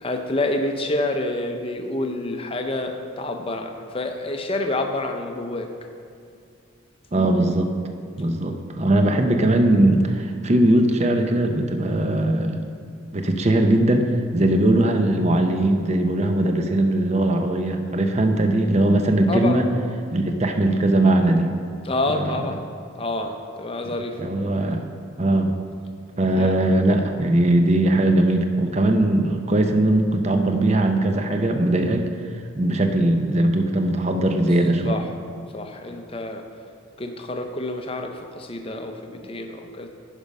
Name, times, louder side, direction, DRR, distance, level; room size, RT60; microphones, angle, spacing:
voice 1, 0.0-5.7 19.3-19.6 21.8-22.6 23.0-24.2 26.3-26.6 34.8-35.1 35.5-36.4 37.0-39.9, left 2 dB, 25° left, 5 dB, 0.6 m, -28 dB
voice 2, 7.1-7.7 8.2-12.6 13.1-14.0 14.3-19.6 20.1-21.5 22.1-22.4 23.8-23.9 24.2-24.9 25.2-25.5 26.2-32.1 32.6-35.0, right 1 dB, 30° right, 5 dB, 0.6 m, -20 dB
9.9 x 5.2 x 5.3 m, 2.3 s
head